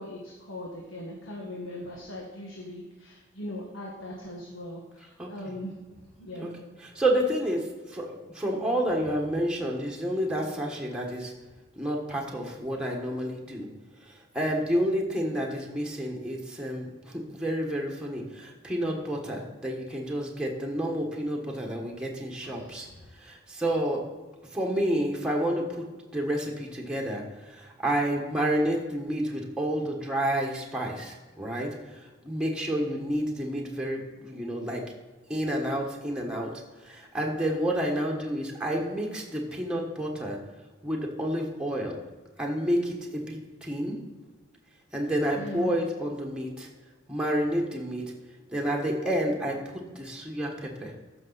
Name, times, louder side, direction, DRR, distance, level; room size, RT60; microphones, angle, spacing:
voice 1, 0.0-6.6 22.4-23.0 45.3-45.7, left 1 dB, 75° left, -2 dB, 1.6 m, -40 dB
voice 2, 6.8-11.3 11.8-13.7 14.1-22.9 23.2-24.0 24.5-25.8 26.1-34.8 35.3-36.5 36.8-40.4 40.8-42.0 42.4-44.0 44.9-46.7 47.1-48.0 48.5-49.5 49.9-50.9, right 1 dB, 5° right, -1 dB, 1.4 m, -29 dB
14.0 x 6.2 x 4.1 m, 1.3 s
head